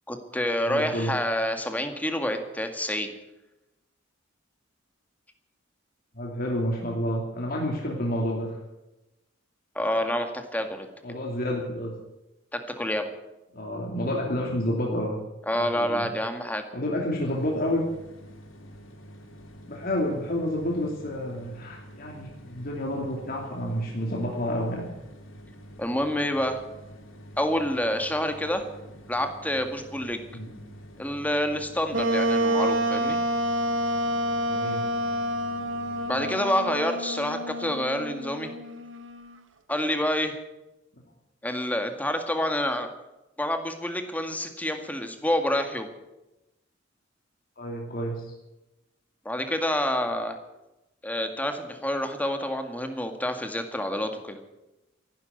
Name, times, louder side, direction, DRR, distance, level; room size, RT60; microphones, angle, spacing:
voice 1, 0.1-3.1 9.8-10.9 12.5-13.1 15.5-16.6 25.8-26.6 27.4-28.7 29.1-30.2 31.0-33.2 36.1-38.5 39.7-40.3 41.4-42.9 43.4-45.9 49.3-50.4 51.0-54.4, left 1 dB, 10° left, 6 dB, 1.9 m, -28 dB
voice 2, 0.7-1.1 6.1-8.6 11.0-11.9 13.5-15.2 15.5-16.1 16.7-17.8 19.7-24.9 30.3-30.6 34.4-34.8 47.6-48.3, equal, 50° left, -1 dB, 2.8 m, -29 dB
sound 1, 17.2-36.5, equal, 85° left, 3.2 m, -47 dB
Wind instrument woodwind instrument, 31.9-39.3, right 1 dB, 75° right, 1.5 m, -28 dB
14.5 x 12.0 x 8.2 m, 0.96 s
head